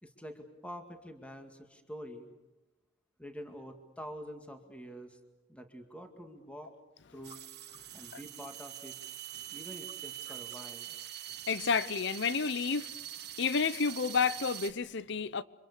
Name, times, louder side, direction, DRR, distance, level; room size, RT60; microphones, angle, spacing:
voice 1, 0.0-2.3 3.2-5.2 5.5-6.7 7.1-7.4 7.9-9.0 9.5-11.0, equal, 5° left, 2.2 m, -46 dB
sound 1, 7.2-14.7, right 11 dB, 60° right, 1.7 m, -44 dB
voice 2, 11.5-12.9 13.4-15.4, left 5 dB, 65° left, 0.8 m, -30 dB
30.0 x 25.5 x 6.8 m
head